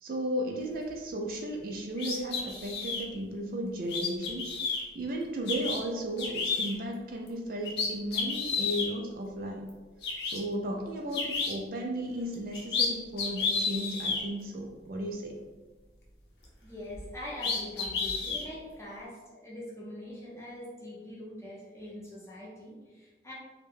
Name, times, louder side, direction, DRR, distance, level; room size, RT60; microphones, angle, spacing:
voice 1, 0.0-4.5 4.9-9.7 10.2-15.4, right 1 dB, 50° right, 1 dB, 0.3 m, -35 dB
sound 1, 2.0-3.0 3.9-4.8 5.5-5.8 6.2-6.7 7.3-7.4 7.6-8.9 9.7-9.8 10.0-10.4 11.1-11.5 12.3-12.9 13.2-14.2 16.9-17.0 17.4-18.4, left 4 dB, 70° left, 0.6 m, -31 dB
voice 2, 16.6-23.3, left 1 dB, 15° left, -6 dB, 0.7 m, -43 dB
2.7 x 2.1 x 3.6 m, 1.3 s
head